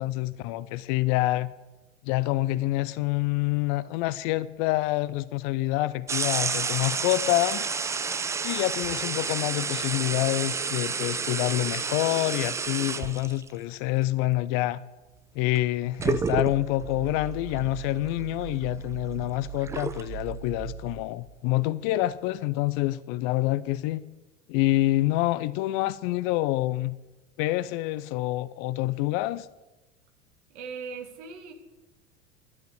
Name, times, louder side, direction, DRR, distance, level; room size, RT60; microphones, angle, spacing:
voice 1, 0.0-1.5 2.0-7.6 8.4-14.8 15.3-24.0 24.5-27.0 27.4-29.5, left 17 dB, 40° left, 16 dB, 0.6 m, -27 dB
sound 1, 6.1-13.5 15.5-15.6 16.0-16.9 17.5-17.6 18.0-20.0, right 5 dB, 10° right, 0.4 m, -30 dB
sound 2, 15.9-21.3, right 10 dB, 25° right, 3.9 m, -40 dB
voice 2, 30.5-31.5, right 5 dB, 60° right, 5 dB, 2.6 m, -39 dB
12.0 x 10.5 x 7.8 m, 1.1 s
figure-of-eight pair, 85°, 39 cm